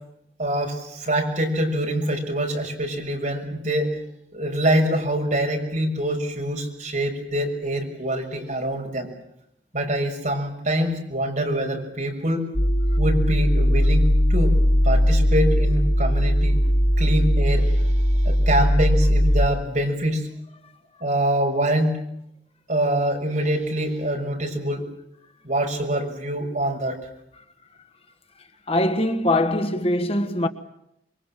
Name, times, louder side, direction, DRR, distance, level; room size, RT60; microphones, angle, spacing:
voice 1, 0.4-4.0 4.3-9.1 9.7-12.4 13.0-14.5 14.8-16.6 17.0-20.3 21.0-22.0 22.7-24.8 25.4-27.0, right 1 dB, 45° right, 6.6 m, -25 dB
sound 1, 12.5-19.5, equal, 70° left, 5.1 m, -19 dB
voice 2, 28.7-30.5, left 1 dB, 35° left, 1.5 m, -22 dB
27.5 x 23.5 x 7.6 m
head